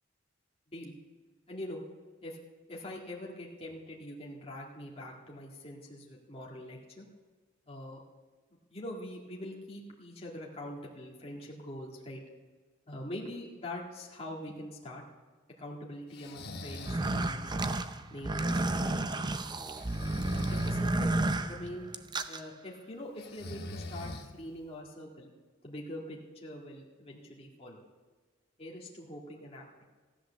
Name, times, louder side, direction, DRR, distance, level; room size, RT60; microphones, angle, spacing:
voice 1, 1.5-1.8 2.2-2.4 2.7-7.1 7.7-8.0 8.7-12.2 12.9-15.0 15.6-17.7 18.1-19.4 20.3-21.9 22.3-25.3 25.6-27.8 28.6-29.7, left 1 dB, 30° left, -3 dB, 2.0 m, -43 dB
Breathing, 16.1-17.1 19.8-20.8 23.2-24.6, left 2 dB, 50° left, 1.3 m, -42 dB
sound 1, 16.7-22.4, right 2 dB, 20° right, 0.6 m, -31 dB
15.0 x 11.0 x 6.9 m, 1.4 s
head